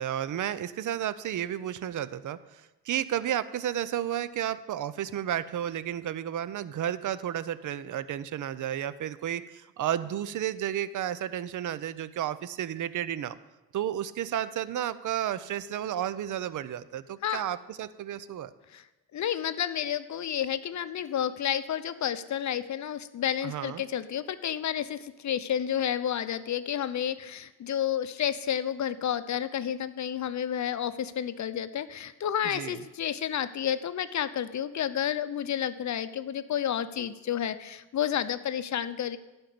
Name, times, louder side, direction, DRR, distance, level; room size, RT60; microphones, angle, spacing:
voice 1, 0.0-13.4 13.7-18.5 23.4-23.8 32.4-32.8, right 11 dB, 55° right, 15 dB, 0.6 m, -32 dB
voice 2, 19.1-39.2, left 9 dB, 50° left, 13 dB, 0.7 m, -30 dB
11.5 x 4.4 x 7.8 m, 1.1 s
supercardioid pair, 60°, 36 cm